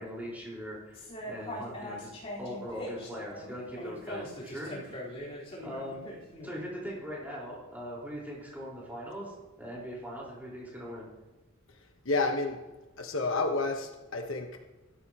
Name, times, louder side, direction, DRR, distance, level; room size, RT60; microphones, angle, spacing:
voice 1, 0.0-2.1 2.4-5.0 5.6-6.2 6.4-11.1, equal, 10° right, -5 dB, 4.5 m, -41 dB
sound 1, 0.9-6.5, left 1 dB, 30° left, 4.3 m, -41 dB
voice 2, 12.0-12.6 13.0-14.5, left 3 dB, 65° left, 4 dB, 1.2 m, -30 dB
16.0 x 13.0 x 3.0 m, 1.1 s
head